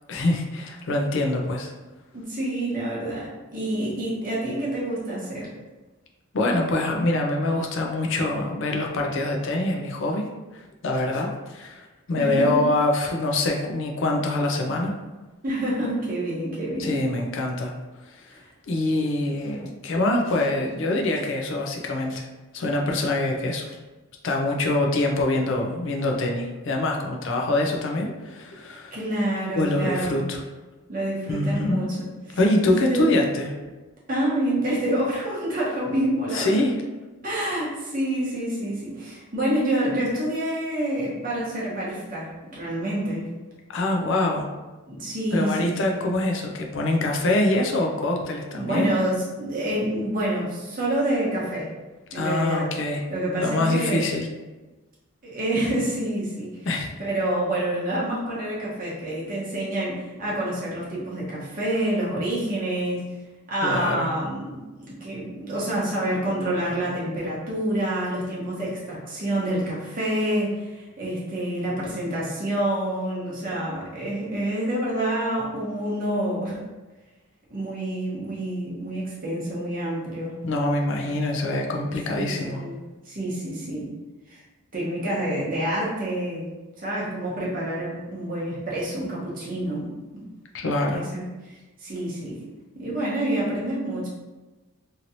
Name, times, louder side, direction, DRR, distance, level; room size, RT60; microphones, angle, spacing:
voice 1, 0.1-1.7 6.3-10.3 10.5-14.9 16.8-17.7 18.7-22.3 22.5-23.8 24.2-29.0 29.6-30.4 31.3-31.9 32.3-33.5 36.3-36.7 43.7-44.5 45.3-48.9 52.1-53.0 53.4-54.3 56.7-56.9 63.6-64.1 80.4-82.6 90.5-91.0, left 2 dB, 55° left, 1 dB, 0.4 m, -24 dB
voice 2, 2.1-5.5 12.2-12.6 15.4-17.0 28.9-30.2 30.9-32.4 32.7-33.1 34.1-36.6 37.2-43.2 44.9-46.0 48.5-51.7 52.1-52.7 53.1-54.2 55.2-56.7 57.0-63.0 63.5-76.6 77.5-80.3 82.1-82.8 83.0-83.9 84.3-84.4 84.7-86.5 86.8-90.2 90.6-92.4 92.7-94.1, right 1 dB, 40° right, -6 dB, 0.9 m, -27 dB
2.9 x 2.7 x 2.6 m, 1.2 s
head